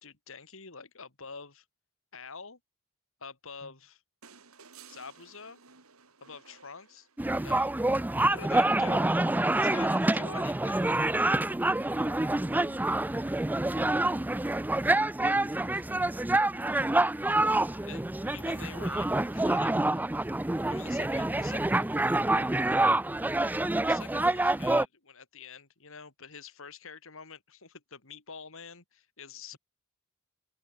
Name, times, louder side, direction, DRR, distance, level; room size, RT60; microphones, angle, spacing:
voice 1, 0.0-1.6 2.1-2.6 3.2-4.0 4.9-5.6 6.2-7.8 8.2-9.2 9.6-10.9 17.7-19.1 19.3-20.3 20.7-21.9 23.8-29.6, left 5 dB, 65° left, 2.9 m, -46 dB
sound 1, 4.2-7.6 9.1-9.2, right 6 dB, 90° right, 3.5 m, -55 dB
sound 2, 7.2-24.8, right 2 dB, 10° right, 0.4 m, -27 dB
voice 2, 8.7-9.2 11.8-12.9 13.2-14.6 15.3-16.0 17.7-18.5 20.9-22.5 29.5-29.6, left 1 dB, 45° left, 7.5 m, -56 dB
open air
head